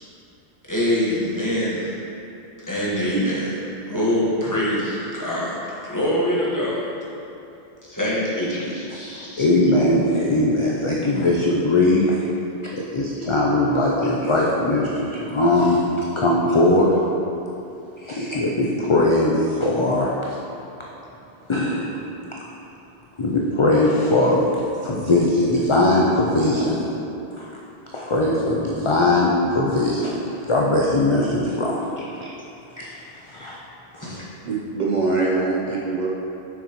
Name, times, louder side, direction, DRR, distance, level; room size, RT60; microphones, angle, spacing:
voice 1, 0.7-2.0 2.7-3.5 3.9-6.9 7.9-9.4 18.0-18.4 34.0-34.2, equal, 20° left, -8 dB, 1.4 m, -24 dB
voice 2, 9.4-12.2 12.7-15.8 16.2-17.0 18.1-20.1 21.5-22.0 23.2-24.5 24.8-26.9 27.4-27.5 27.9-31.8 32.8-33.6 33.9-34.1, left 2 dB, 40° left, -3 dB, 0.5 m, -20 dB
voice 3, 34.4-36.1, right 3 dB, 50° right, -4 dB, 0.7 m, -23 dB
6.9 x 6.0 x 3.0 m, 2.8 s
omnidirectional pair, 1.1 m